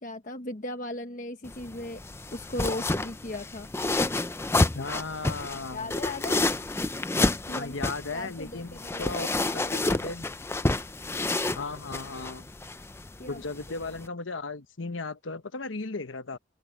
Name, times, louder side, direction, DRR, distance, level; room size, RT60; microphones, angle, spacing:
voice 1, 0.0-2.0 2.3-3.7 5.7-6.5 7.5-7.7 8.1-9.6 13.2-13.4, left 1 dB, 40° left, 1.1 m, -37 dB
sound 1, 1.4-14.1, left 2 dB, 15° left, 0.5 m, -30 dB
voice 2, 4.7-5.9 7.6-10.3 11.5-12.5 13.3-16.4, left 3 dB, 85° left, 1.1 m, -36 dB
open air
head